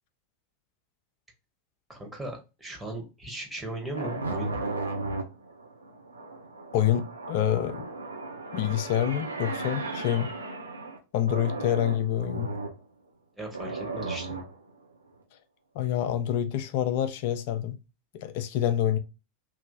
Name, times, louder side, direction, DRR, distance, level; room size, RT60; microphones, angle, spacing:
voice 1, 1.9-4.5 5.0-5.2 13.4-14.3, right 1 dB, 5° right, 1.3 m, -37 dB
sound 1, 3.9-11.0 11.3-12.8 13.5-14.7, right 3 dB, 90° right, 0.7 m, -35 dB
voice 2, 6.7-7.9 8.5-10.3 11.1-12.5 15.7-17.8 18.1-19.0, left 11 dB, 55° left, 0.5 m, -27 dB
3.0 x 2.7 x 2.6 m
figure-of-eight pair, 85°, 0 cm